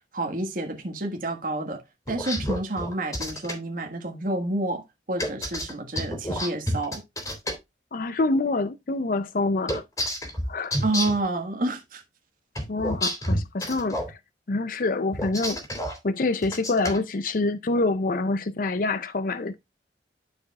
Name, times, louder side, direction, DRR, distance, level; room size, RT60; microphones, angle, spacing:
voice 1, 0.1-1.8 2.1-7.0 10.8-12.0, right 2 dB, 50° right, 1.6 m, -29 dB
sound 1, 2.1-3.5 5.2-7.5 9.7-11.3 12.5-14.1 15.1-16.0 16.4-17.0, equal, 20° left, 2.6 m, -29 dB
voice 2, 7.9-9.8 10.5-10.8 12.7-14.2 14.5-15.6 16.0-19.6, left 2 dB, 50° left, 0.5 m, -26 dB
13.5 x 4.9 x 2.3 m
head